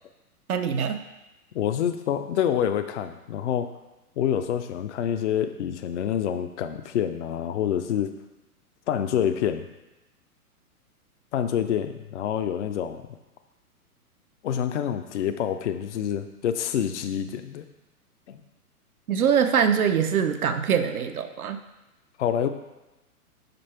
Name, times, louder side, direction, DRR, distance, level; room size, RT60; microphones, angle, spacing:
voice 1, 0.5-1.0 19.1-21.6, right 7 dB, 70° right, 7 dB, 0.6 m, -23 dB
voice 2, 1.5-3.7 4.2-8.1 8.9-9.7 11.3-13.1 14.4-17.6 18.3-18.4 22.2-22.5, left 9 dB, 50° left, 8 dB, 0.5 m, -27 dB
5.2 x 5.1 x 4.3 m, 1.0 s
figure-of-eight pair, 115°, 46 cm